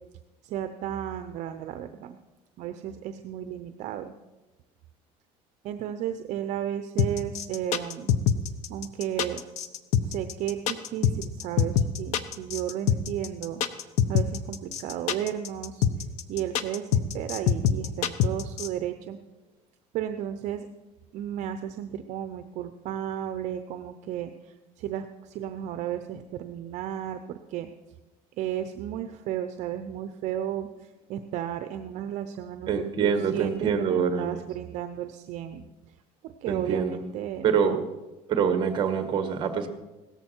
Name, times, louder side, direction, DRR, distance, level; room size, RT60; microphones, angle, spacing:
voice 1, 0.4-2.2 2.6-4.1 5.6-8.1 8.7-9.4 10.0-13.6 14.1-15.8 16.3-19.2 19.9-20.7 21.1-27.7 28.4-35.6 36.2-37.5, right 10 dB, 55° right, 9 dB, 0.7 m, -34 dB
sound 1, 7.0-18.7, left 9 dB, 55° left, 0.9 m, -24 dB
voice 2, 32.7-34.4 36.5-37.0 37.4-37.8 38.3-39.7, right 7 dB, 35° right, 8 dB, 1.6 m, -25 dB
17.0 x 14.0 x 4.5 m, 1.1 s
cardioid pair, 160°, 15 cm